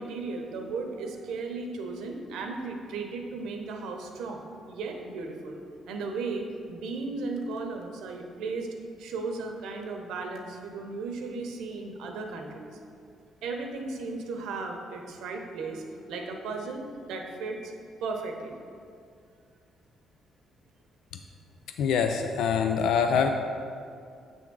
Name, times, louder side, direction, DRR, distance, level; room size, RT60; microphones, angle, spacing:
voice 1, 0.0-8.7 9.0-12.8 13.4-17.7 18.0-18.6, right 3 dB, 85° right, 3 dB, 0.8 m, -35 dB
voice 2, 21.8-23.3, left 6 dB, 80° left, 6 dB, 0.3 m, -24 dB
7.9 x 3.6 x 6.1 m, 2.3 s
cardioid pair, 90°, 0 cm